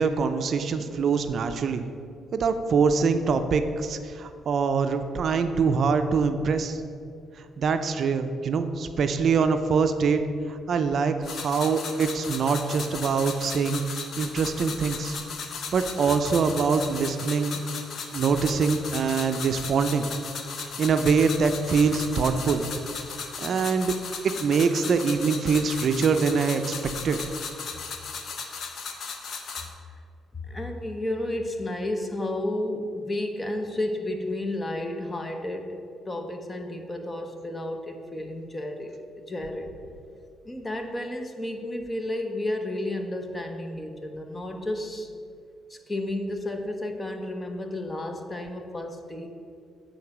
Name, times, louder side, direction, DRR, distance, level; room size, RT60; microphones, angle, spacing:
voice 1, 0.0-1.8 2.3-6.8 7.6-10.2 10.5-13.8 14.2-15.2 15.7-17.6 18.1-20.1 20.8-22.7 23.4-23.9 24.4-26.7 27.0-27.3, right 5 dB, 55° right, 8 dB, 0.4 m, -24 dB
sound 1, 11.2-29.7, left 5 dB, 60° left, 0.8 m, -36 dB
voice 2, 30.3-35.8 36.1-39.7 40.4-45.1 45.7-49.3, left 1 dB, 20° left, 5 dB, 0.8 m, -32 dB
8.4 x 3.8 x 5.9 m, 2.3 s
cardioid pair, 90°, 0 cm